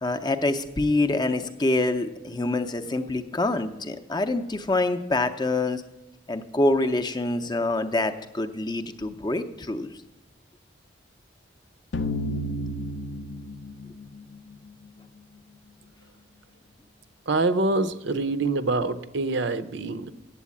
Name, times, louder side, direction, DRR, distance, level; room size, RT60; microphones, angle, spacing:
voice 1, 0.0-5.8 6.3-9.9, left 2 dB, 20° left, 9 dB, 0.5 m, -26 dB
sound 1, 11.9-14.9, left 1 dB, 65° left, 0.5 m, -32 dB
voice 2, 17.3-20.1, right 2 dB, 65° right, 13 dB, 0.6 m, -25 dB
8.4 x 8.1 x 8.4 m, 1.0 s
head